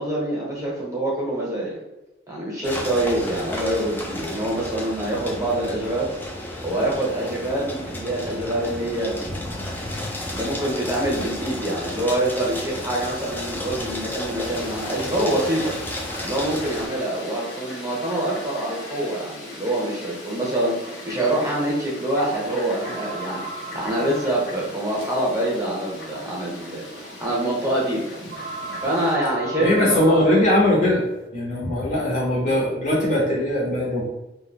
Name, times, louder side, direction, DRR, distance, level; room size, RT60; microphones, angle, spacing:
voice 1, 0.0-1.8 2.3-6.1 6.6-9.4 10.3-15.7 16.2-28.1 28.8-30.2, right 1 dB, 15° right, -5 dB, 0.8 m, -25 dB
sound 1, 2.6-16.9, left 1 dB, 10° left, 0.4 m, -32 dB
Fowl, 14.4-29.1, left 1 dB, 60° left, 1.1 m, -39 dB
sound 2, 22.8-31.3, right 3 dB, 50° right, 0.4 m, -37 dB
voice 2, 29.6-31.0 31.3-34.1, left 1 dB, 40° left, -4 dB, 0.7 m, -20 dB
2.5 x 2.1 x 3.5 m, 0.99 s
head